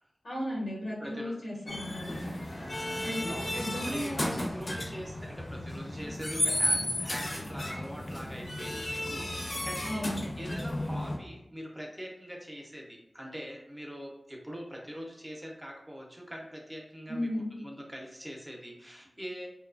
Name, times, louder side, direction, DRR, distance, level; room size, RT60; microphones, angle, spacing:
voice 1, 0.2-2.3 3.0-4.2 9.8-10.2 17.1-17.5, left 1 dB, 80° left, -5 dB, 1.0 m, -35 dB
voice 2, 1.0-1.4 3.3-10.1 10.4-19.5, equal, 10° right, -1 dB, 0.6 m, -43 dB
sound 1, 1.7-11.2, left 1 dB, 60° left, 0.7 m, -33 dB
2.8 x 2.3 x 2.4 m, 0.84 s
wide cardioid pair, 70°, 0 cm